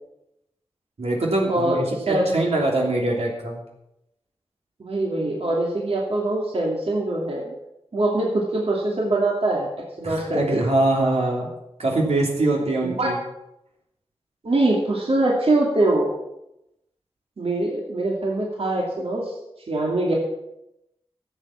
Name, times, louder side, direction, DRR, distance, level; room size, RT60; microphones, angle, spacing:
voice 1, 1.0-3.6 10.0-11.5 11.8-13.2, right 2 dB, 90° right, -1 dB, 3.1 m, -23 dB
voice 2, 4.8-7.5 7.9-9.7 10.0-10.6 12.8-13.1 14.4-16.1 17.4-19.3 19.7-20.1, right 2 dB, 70° right, -2 dB, 2.6 m, -23 dB
13.0 x 7.5 x 7.5 m, 0.86 s
wide cardioid pair, 95°, 10 cm